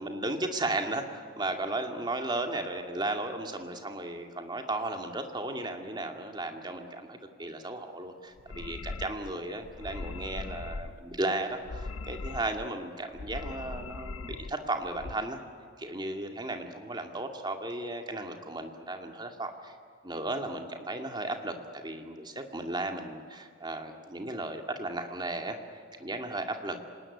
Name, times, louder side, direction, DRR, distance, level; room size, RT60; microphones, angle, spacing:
voice 1, 0.0-15.4 15.8-19.7 20.0-21.5 21.8-26.8, right 2 dB, 20° right, 4 dB, 2.1 m, -35 dB
sound 1, 8.4-9.3 9.6-11.0 11.5-12.7 13.1-14.5 14.8-15.2, left 3 dB, 85° left, 0.7 m, -40 dB
26.0 x 19.0 x 9.8 m, 2.1 s
head